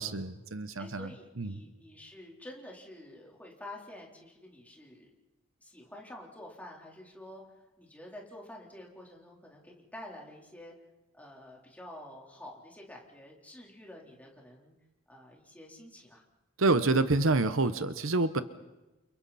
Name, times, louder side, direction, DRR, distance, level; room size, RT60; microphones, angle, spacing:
voice 1, 0.0-1.1 1.4-1.6 16.6-18.4, right 3 dB, 75° right, 11 dB, 1.0 m, -27 dB
voice 2, 0.8-5.1 5.6-10.7 11.1-14.7 15.1-16.2, left 1 dB, 10° left, -2 dB, 3.9 m, -49 dB
29.5 x 29.0 x 4.3 m, 1.0 s
head